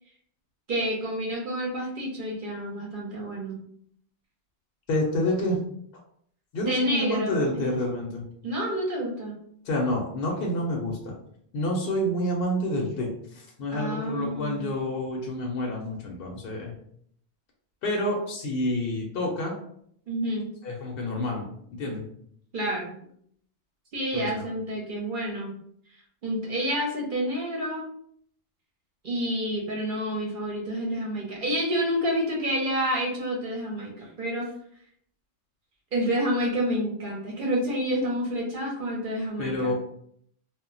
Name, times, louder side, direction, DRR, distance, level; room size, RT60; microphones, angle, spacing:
voice 1, 0.7-3.6 6.7-7.8 8.4-9.4 13.7-14.8 20.1-20.5 22.5-23.0 23.9-25.5 26.2-27.8 29.0-34.5 35.9-39.7, equal, 55° right, -2 dB, 0.7 m, -29 dB
voice 2, 4.9-5.6 6.5-8.2 9.7-11.1 11.5-13.1 13.6-16.7 17.8-19.5 20.6-21.5 21.8-22.0 24.1-24.5 39.4-39.7, left 1 dB, 60° left, -1 dB, 0.8 m, -28 dB
2.1 x 2.1 x 3.7 m, 0.66 s
omnidirectional pair, 1.2 m